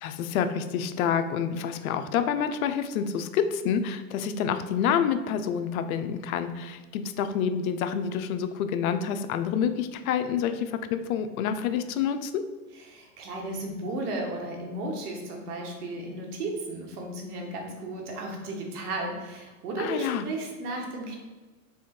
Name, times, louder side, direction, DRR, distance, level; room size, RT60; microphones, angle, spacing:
voice 1, 0.0-12.4 19.8-20.3, left 8 dB, 70° left, 9 dB, 0.6 m, -28 dB
voice 2, 12.7-21.2, right 2 dB, 80° right, 1 dB, 1.4 m, -34 dB
3.5 x 3.5 x 4.4 m, 1.3 s
hypercardioid pair, 125°, 45 cm